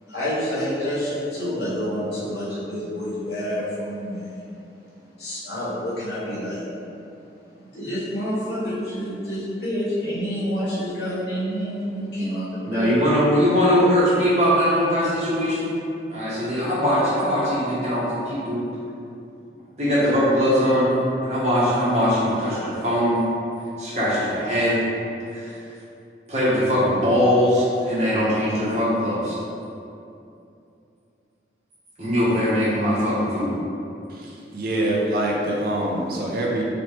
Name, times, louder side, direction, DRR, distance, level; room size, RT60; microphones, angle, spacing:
voice 1, 0.0-4.5 5.2-6.7 7.5-13.0, equal, 75° left, -10 dB, 1.2 m, -28 dB
voice 2, 12.6-15.7 16.1-18.6 19.8-20.9 21.2-23.2 23.8-24.9 25.3-25.5 26.3-29.4 32.0-33.6, equal, 40° right, -9 dB, 1.0 m, -21 dB
voice 3, 34.1-36.6, right 1 dB, 55° right, -3 dB, 0.5 m, -25 dB
3.0 x 3.0 x 3.1 m, 2.7 s
head